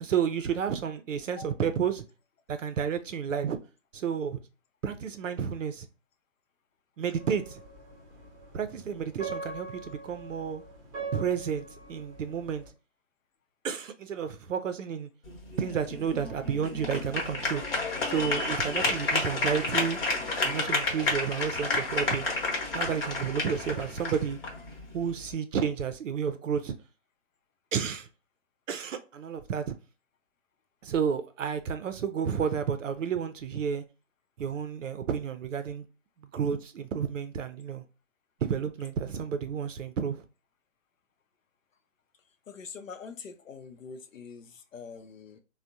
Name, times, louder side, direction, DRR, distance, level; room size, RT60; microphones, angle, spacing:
voice 1, 0.0-2.0 2.5-3.6 3.9-4.4 4.8-5.9 7.0-7.6 8.5-10.6 11.1-12.6 13.6-15.1 15.6-17.6 18.1-20.0 20.4-22.3 22.7-24.4 24.9-26.7 27.7-28.1 28.7-29.7 30.8-33.8 34.4-35.8 36.3-37.8 38.4-40.2, right 7 dB, 70° right, 0.5 m, -31 dB
sound 1, 7.1-12.7, right 3 dB, 15° right, 0.7 m, -42 dB
sound 2, 15.2-25.3, left 3 dB, 45° left, 0.9 m, -31 dB
voice 2, 42.5-45.4, left 5 dB, 75° left, 0.6 m, -44 dB
3.3 x 2.1 x 2.6 m
figure-of-eight pair, 140°, 40 cm